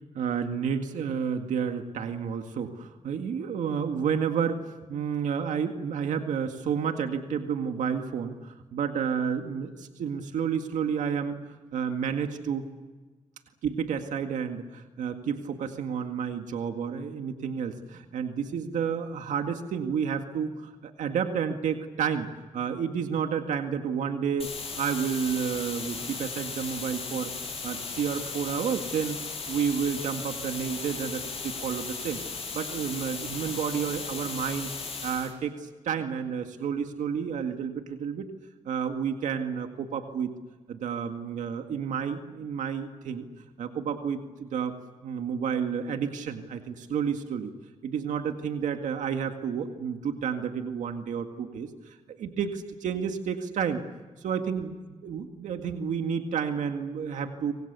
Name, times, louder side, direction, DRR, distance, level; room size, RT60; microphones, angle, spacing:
voice 1, 0.2-4.6 4.9-11.4 11.7-12.7 13.6-22.3 22.5-24.5 24.8-27.3 27.6-29.2 29.5-32.2 32.5-34.7 35.0-38.3 38.7-40.3 40.7-43.3 43.6-44.8 45.0-47.5 47.8-53.8 54.2-54.7 55.0-57.5, right 7 dB, 85° right, 6 dB, 2.0 m, -30 dB
sound 1, 24.4-35.3, left 4 dB, 50° left, 7.8 m, -36 dB
27.5 x 25.5 x 6.9 m, 1.3 s
cardioid pair, 60°, 12 cm